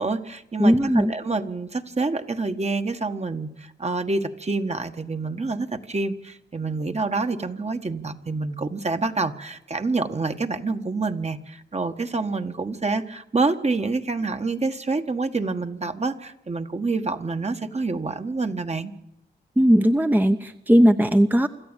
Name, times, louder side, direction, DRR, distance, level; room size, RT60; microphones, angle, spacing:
voice 1, 0.0-18.9, right 3 dB, 35° right, 7 dB, 1.6 m, -27 dB
voice 2, 0.6-1.1 19.6-21.5, equal, 10° right, 7 dB, 0.9 m, -18 dB
26.0 x 14.0 x 9.1 m, 0.89 s
wide cardioid pair, 75°, 18 cm